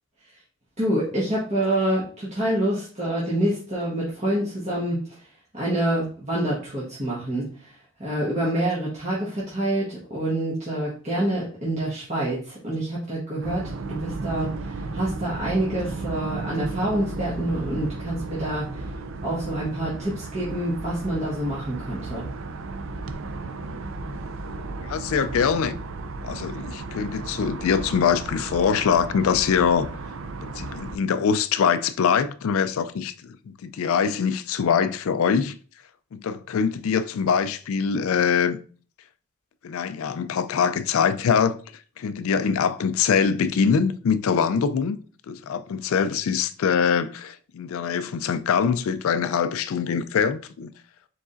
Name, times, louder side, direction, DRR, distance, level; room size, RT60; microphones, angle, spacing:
voice 1, 0.8-5.2 5.5-7.7 8.0-18.9 19.2-22.3, right 1 dB, 30° right, 1.2 m, -27 dB
sound 1, 13.4-31.0, right 3 dB, 60° right, 0.4 m, -34 dB
voice 2, 24.8-25.8 26.2-29.9 30.4-35.6 36.1-38.6 39.6-41.6 42.0-45.0 45.3-50.7, left 6 dB, 70° left, 0.3 m, -23 dB
4.8 x 4.0 x 2.5 m
head